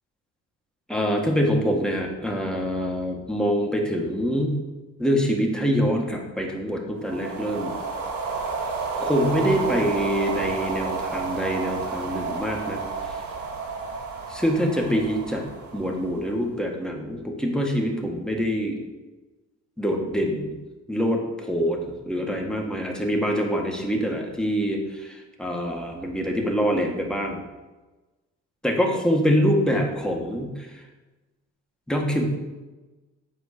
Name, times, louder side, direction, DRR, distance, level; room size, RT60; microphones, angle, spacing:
voice 1, 0.9-4.6 5.0-7.7 9.0-12.8 13.1-13.2 14.3-15.5 15.7-18.8 19.8-20.5 20.9-27.4 28.6-30.7 31.9-32.2, equal, ahead, 0 dB, 1.8 m, -25 dB
sound 1, 7.0-16.5, right 4 dB, 70° right, 1.8 m, -31 dB
9.2 x 4.5 x 6.6 m, 1.2 s
cardioid pair, 90°, 30 cm